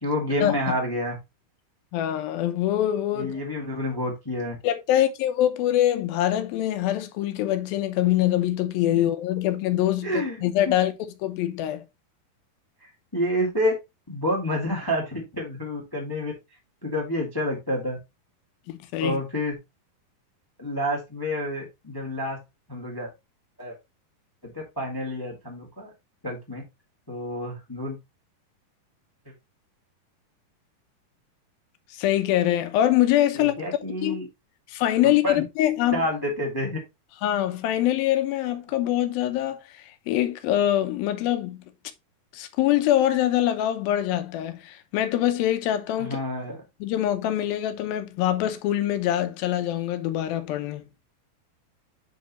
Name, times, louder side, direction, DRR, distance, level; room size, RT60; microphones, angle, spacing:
voice 1, 0.0-1.2 3.2-4.5 10.0-10.8 13.1-13.7 14.1-16.3 16.8-18.0 19.0-19.5 20.6-22.4 22.7-23.1 23.6-23.8 24.5-25.9 26.2-26.6 27.1-28.0 33.3-34.3 35.2-35.4 35.9-36.8 46.0-46.6, left 1 dB, 25° left, 0.4 m, -28 dB
voice 2, 1.9-3.4 4.6-10.9 11.2-11.8 18.7-19.2 31.9-33.5 33.9-34.2 34.7-36.0 37.2-39.6 40.1-41.6 42.3-46.2 46.8-50.8, left 12 dB, 75° left, 2.5 m, -24 dB
9.5 x 4.1 x 2.9 m
omnidirectional pair, 4.5 m